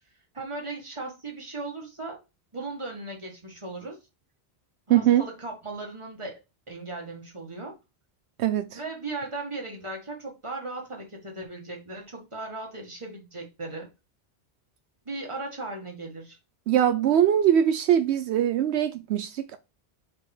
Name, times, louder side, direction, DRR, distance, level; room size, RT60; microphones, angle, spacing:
voice 1, 0.3-2.2 2.5-4.0 4.9-6.4 6.7-7.8 8.7-13.9 15.1-16.4, right 2 dB, 25° right, 1.7 m, -37 dB
voice 2, 4.9-5.2 8.4-8.8 16.7-19.6, right 10 dB, 80° right, 0.8 m, -22 dB
4.8 x 4.6 x 4.3 m
omnidirectional pair, 1.1 m